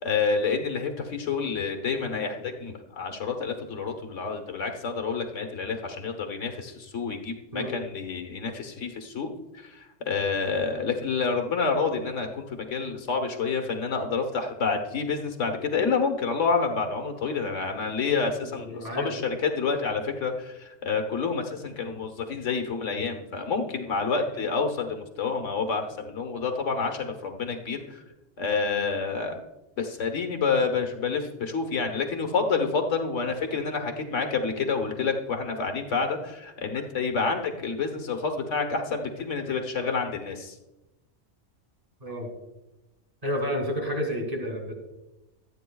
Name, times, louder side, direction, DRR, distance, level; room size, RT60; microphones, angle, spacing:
voice 1, 0.0-28.0 28.4-29.4 29.8-40.5, left 5 dB, 90° left, 5 dB, 1.6 m, -28 dB
voice 2, 18.4-19.1 42.0-42.3 43.2-44.7, equal, 30° right, 0 dB, 3.0 m, -30 dB
25.0 x 9.2 x 2.3 m, 0.99 s
omnidirectional pair, 1.2 m